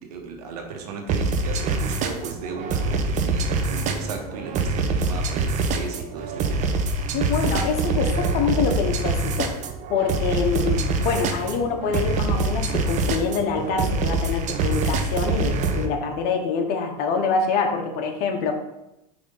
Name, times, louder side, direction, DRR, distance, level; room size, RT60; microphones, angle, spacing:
voice 1, 0.0-6.9, right 4 dB, 75° right, 3 dB, 1.3 m, -36 dB
sound 1, 1.1-15.9, right 3 dB, 40° right, 0.8 m, -25 dB
voice 2, 7.1-9.6 9.9-18.5, left 5 dB, 50° left, 4 dB, 1.1 m, -25 dB
5.0 x 3.5 x 5.4 m, 0.91 s
hypercardioid pair, 110°, 20 cm